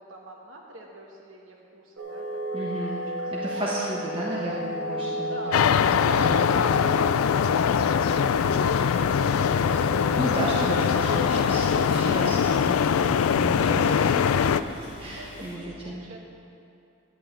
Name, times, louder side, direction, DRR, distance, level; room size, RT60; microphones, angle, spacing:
voice 1, 0.0-4.4 5.2-9.2 15.2-16.2, right 1 dB, 70° right, -1 dB, 1.2 m, -46 dB
sound 1, 2.0-11.9, equal, 50° right, 1.5 m, -35 dB
voice 2, 2.5-3.0 3.4-6.4 10.2-12.8 13.3-14.5 15.0-16.0, right 1 dB, 25° right, -5 dB, 1.0 m, -33 dB
sound 2, 5.5-14.6, left 7 dB, 90° left, 0.4 m, -22 dB
sound 3, 8.2-15.6, left 1 dB, 40° left, 2.8 m, -45 dB
11.0 x 5.7 x 8.3 m, 2.6 s
head